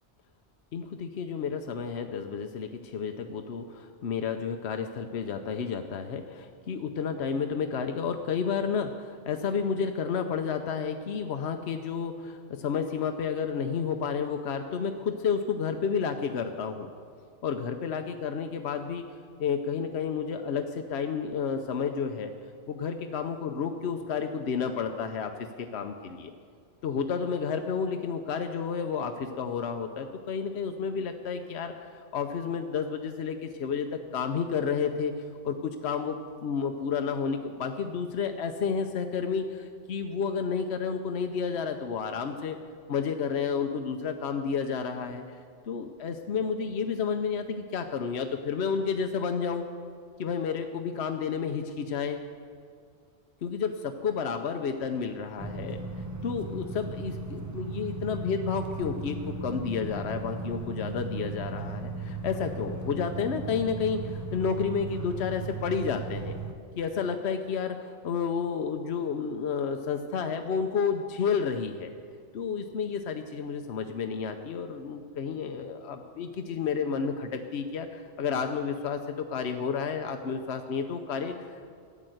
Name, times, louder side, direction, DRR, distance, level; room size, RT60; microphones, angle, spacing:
voice 1, 0.7-16.9 17.4-19.1 19.4-22.3 22.7-26.3 26.8-35.1 35.4-42.6 42.9-45.4 45.7-49.6 50.2-52.2 53.4-55.8 56.2-66.3 66.8-71.9 72.3-81.7, left 6 dB, 75° left, 6 dB, 1.0 m, -31 dB
sound 1, 55.4-66.5, right 3 dB, 20° right, 0.8 m, -37 dB
15.0 x 10.0 x 7.9 m, 2.1 s
omnidirectional pair, 1.1 m